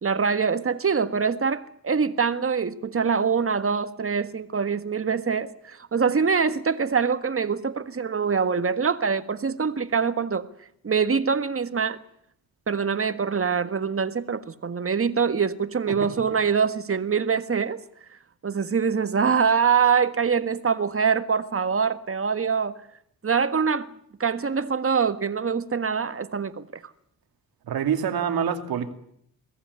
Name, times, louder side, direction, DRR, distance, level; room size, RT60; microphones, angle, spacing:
voice 1, 0.0-10.5 10.8-12.0 12.7-17.8 18.4-22.7 23.2-23.9 24.2-26.7, right 6 dB, 40° right, 1.7 m, -24 dB
voice 2, 27.7-28.9, right 8 dB, 85° right, 2.6 m, -26 dB
23.0 x 15.0 x 9.7 m
cardioid pair, 75°, 36 cm